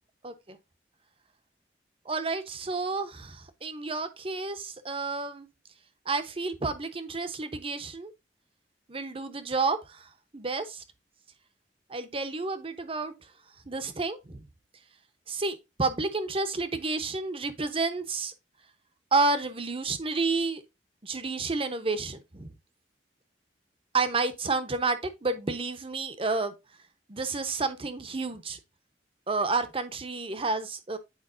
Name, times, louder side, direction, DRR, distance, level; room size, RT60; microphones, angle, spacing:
voice 1, 0.2-0.6 2.1-5.5 6.1-8.1 8.9-10.8 11.9-13.2 13.7-14.4 15.3-18.3 19.1-20.6 21.0-22.5 23.9-26.6 27.1-28.6 29.3-31.0, right 3 dB, 30° right, 0.9 m, -30 dB
8.9 x 4.7 x 2.6 m
head